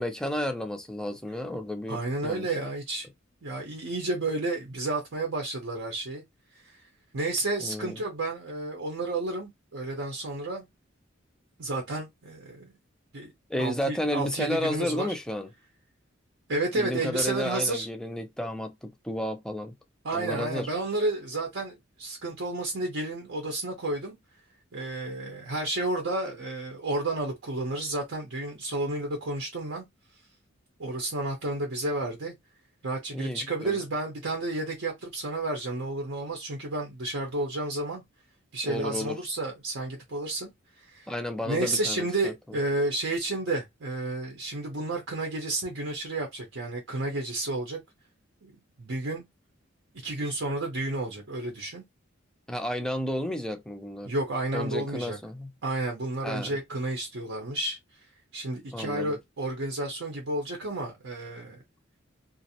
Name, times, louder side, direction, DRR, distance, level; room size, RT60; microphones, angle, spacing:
voice 1, 0.0-2.5 7.6-8.0 13.5-15.5 16.7-19.7 20.1-20.7 33.1-33.8 38.6-39.2 41.1-42.3 52.5-54.1 54.5-55.5 56.2-56.6 58.7-59.2, left 1 dB, 5° left, 0.3 m, -32 dB
voice 2, 1.9-3.1 3.4-6.2 6.5-6.8 7.1-10.6 11.6-12.7 13.1-13.3 13.6-15.1 16.5-17.9 20.0-24.2 24.7-29.8 30.8-32.3 32.8-38.0 38.5-40.5 40.8-41.1 41.4-47.8 48.4-48.5 48.8-49.2 50.0-51.8 54.0-55.2 55.6-57.8 58.3-61.6, right 2 dB, 75° right, 0.7 m, -31 dB
2.5 x 2.0 x 2.7 m
head